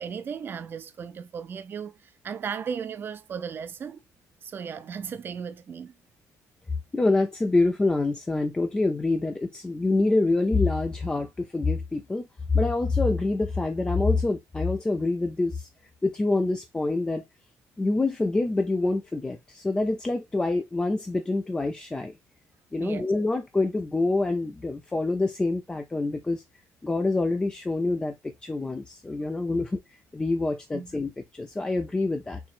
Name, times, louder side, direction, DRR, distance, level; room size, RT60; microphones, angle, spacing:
voice 1, 0.0-4.0 4.4-5.9 22.8-23.1 29.5-29.6 30.7-31.0, right 7 dB, 40° right, 0.5 m, -36 dB
voice 2, 6.9-12.3 12.5-15.7 16.0-17.2 17.8-22.1 22.7-26.4 26.8-29.8 30.1-32.4, left 3 dB, 15° left, 0.5 m, -26 dB
4.4 x 3.1 x 2.5 m
cardioid pair, 140°, 6 cm